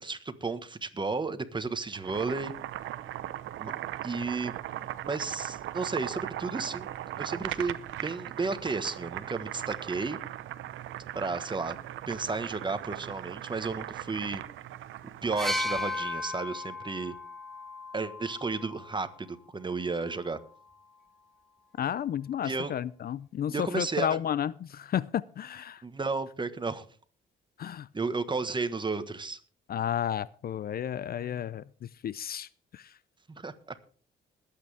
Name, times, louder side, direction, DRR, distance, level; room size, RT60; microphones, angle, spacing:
voice 1, 0.0-2.5 3.6-3.7 4.0-4.6 5.0-6.9 7.2-10.2 11.1-11.8 12.1-14.4 15.2-17.1 17.9-20.4 22.4-22.7 23.5-24.1 25.8-26.8 27.9-29.4 33.3-33.8, right 4 dB, 25° right, 11 dB, 1.4 m, -33 dB
Boiling, 1.9-15.9, right 13 dB, 80° right, 0.8 m, -39 dB
sound 1, 15.4-19.2 20.2-20.4, left 2 dB, ahead, 1.1 m, -35 dB
voice 2, 21.8-25.8 27.6-27.9 29.7-33.0, left 9 dB, 50° left, 20 dB, 0.5 m, -32 dB
20.5 x 8.8 x 3.5 m, 0.43 s
cardioid pair, 90°, 20 cm